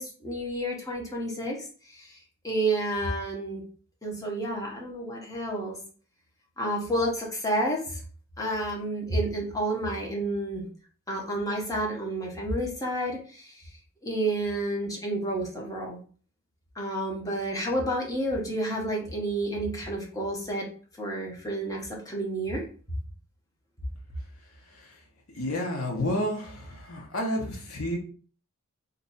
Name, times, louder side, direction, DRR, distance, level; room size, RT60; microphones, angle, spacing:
voice 1, 0.0-1.6 1.9-2.2 2.4-3.6 4.0-5.8 6.6-8.0 8.4-10.7 11.1-13.7 14.0-16.0 16.8-20.7 21.0-22.6, right 1 dB, 15° left, -2 dB, 0.8 m, -30 dB
voice 2, 25.3-28.0, left 1 dB, 80° left, 1 dB, 0.9 m, -30 dB
2.7 x 2.3 x 3.9 m, 0.41 s
head